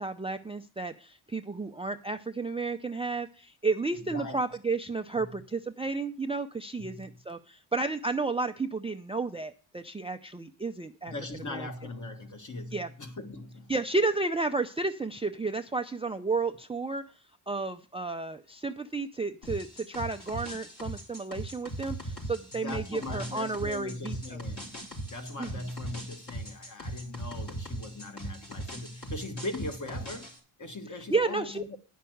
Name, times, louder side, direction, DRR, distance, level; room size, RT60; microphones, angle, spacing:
voice 1, 0.0-11.1 11.5-11.7 12.7-12.9 13.7-17.0 17.5-24.4 25.4-25.7 31.0-31.6, right 3 dB, 10° right, 0.5 m, -32 dB
voice 2, 3.9-4.5 5.2-5.4 6.8-7.4 11.1-13.7 22.5-31.8, left 2 dB, 35° left, 1.6 m, -40 dB
sound 1, 19.4-30.4, right 1 dB, 55° left, 4.2 m, -40 dB
10.0 x 5.7 x 7.8 m
cardioid pair, 105°, 48 cm